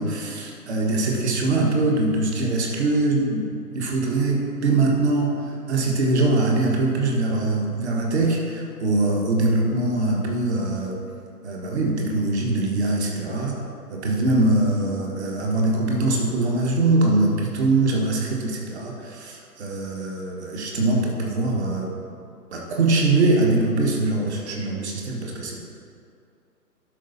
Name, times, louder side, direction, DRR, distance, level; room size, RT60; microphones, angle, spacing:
voice 1, 0.0-3.5 3.7-5.3 5.7-11.0 11.4-13.6 13.9-21.9 22.5-25.6, right 2 dB, 40° right, -1 dB, 1.6 m, -22 dB
12.0 x 4.8 x 4.1 m, 2.4 s
figure-of-eight pair, 140°, 49 cm